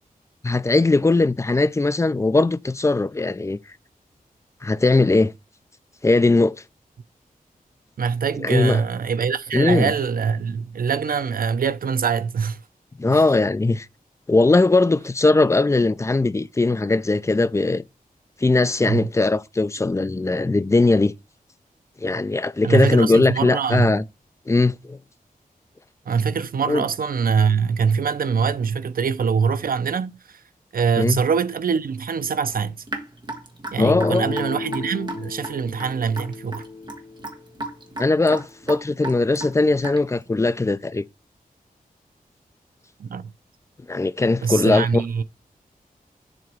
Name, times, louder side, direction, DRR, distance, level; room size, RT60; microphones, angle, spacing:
voice 1, 0.4-3.6 4.6-5.3 6.0-6.6 8.4-8.8 9.5-9.9 13.0-13.9 14.3-17.8 18.4-21.1 22.0-24.0 24.5-25.0 26.7-26.8 31.0-31.2 33.8-34.2 38.0-41.0 43.9-45.2, left 3 dB, 20° left, 0.4 m, -19 dB
voice 2, 8.0-12.6 13.1-13.2 18.8-19.1 22.6-23.9 26.1-30.4 30.7-32.8 33.7-36.6 43.0-43.3 44.4-45.2, right 6 dB, 70° right, 0.6 m, -23 dB
Raindrop / Drip, 32.9-40.2, right 2 dB, 30° right, 1.5 m, -34 dB
sound 1, 33.7-37.4, left 3 dB, 40° left, 0.8 m, -30 dB
7.5 x 3.0 x 6.0 m
wide cardioid pair, 130°, 15 cm